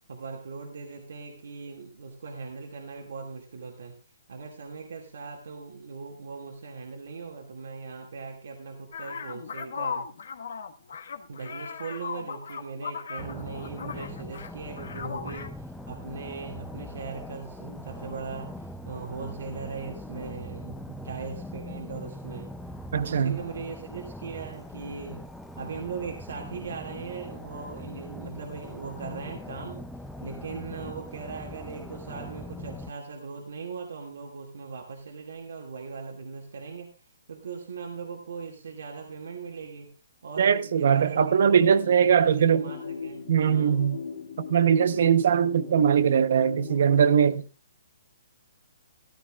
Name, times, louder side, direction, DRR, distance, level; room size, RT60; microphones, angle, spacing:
voice 1, 0.1-4.0 4.3-10.1 11.3-22.5 23.0-25.3 25.6-29.9 30.2-36.9 37.3-39.9 40.2-41.6 42.2-43.7, right 5 dB, 75° right, 2.2 m, -39 dB
sound 1, 8.9-14.5 14.8-15.5, left 6 dB, 70° left, 1.3 m, -37 dB
sound 2, 13.2-32.9, left 1 dB, ahead, 0.5 m, -42 dB
voice 2, 22.9-23.4 40.4-42.7 43.3-44.0 44.5-47.4, right 8 dB, 60° right, 0.9 m, -21 dB
sound 3, 41.3-47.3, left 6 dB, 55° left, 1.9 m, -39 dB
14.0 x 13.0 x 2.4 m
hypercardioid pair, 160°, 0 cm